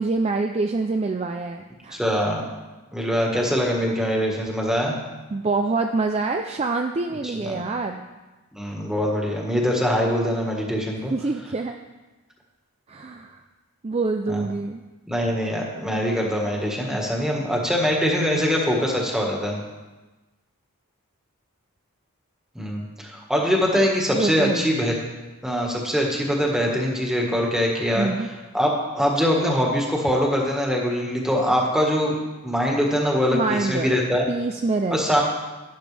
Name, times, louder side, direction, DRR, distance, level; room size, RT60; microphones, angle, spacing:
voice 1, 0.0-2.0 5.3-8.1 11.1-11.7 12.9-13.4 13.8-14.8 24.1-24.7 27.9-28.3 33.3-33.9 34.3-35.2, right 3 dB, 30° right, 4 dB, 0.4 m, -26 dB
voice 2, 1.9-2.4 2.9-4.9 7.4-7.6 8.5-11.1 14.3-14.4 15.1-19.6 22.5-24.9 25.4-28.1 28.5-32.2 32.4-34.3 34.9-35.2, equal, 5° right, -1 dB, 1.6 m, -23 dB
12.0 x 10.5 x 3.4 m, 1.2 s
head